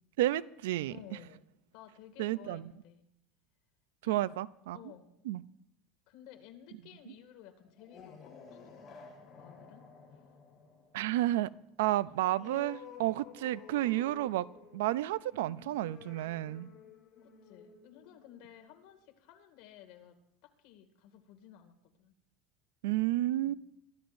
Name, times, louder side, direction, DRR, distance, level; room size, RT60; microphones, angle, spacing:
voice 1, 0.2-0.9 2.2-2.6 4.0-4.8 5.3-5.4 10.9-11.5 11.8-14.5 14.7-16.7 22.8-23.5, right 15 dB, 90° right, 18 dB, 0.4 m, -31 dB
voice 2, 0.9-1.4 1.7-3.1 4.0-4.2 4.7-5.1 6.1-9.9 10.1-10.2 13.0-13.2 16.2-16.4 17.2-20.2 20.6-22.2 23.4-23.6, left 10 dB, 60° left, 5 dB, 2.1 m, -55 dB
sound 1, 7.6-18.9, left 6 dB, 25° left, 4.5 m, -53 dB
23.0 x 13.5 x 2.6 m, 0.79 s
supercardioid pair, 145°, 0 cm